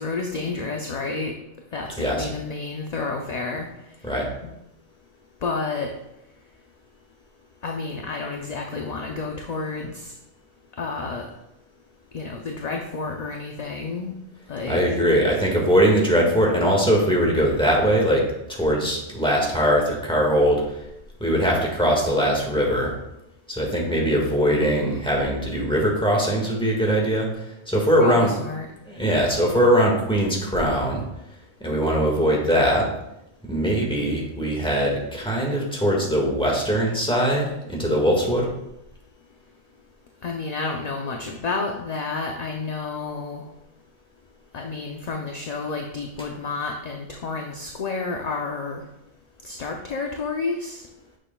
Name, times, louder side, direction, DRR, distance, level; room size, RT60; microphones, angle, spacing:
voice 1, 0.0-1.3 1.7-3.7 4.4-4.5 5.4-5.9 7.6-10.1 10.8-11.3 12.1-14.1 14.5-15.0 24.5-25.1 28.0-28.7 40.2-43.4 44.5-48.8 49.4-50.8, left 4 dB, 45° left, 1 dB, 0.6 m, -30 dB
voice 2, 14.7-18.2 18.5-20.8 21.2-22.9 23.5-28.3 28.8-31.0 31.6-32.9 33.5-38.5, equal, 5° left, -2 dB, 1.7 m, -21 dB
9.0 x 6.5 x 2.3 m, 0.86 s
omnidirectional pair, 1.2 m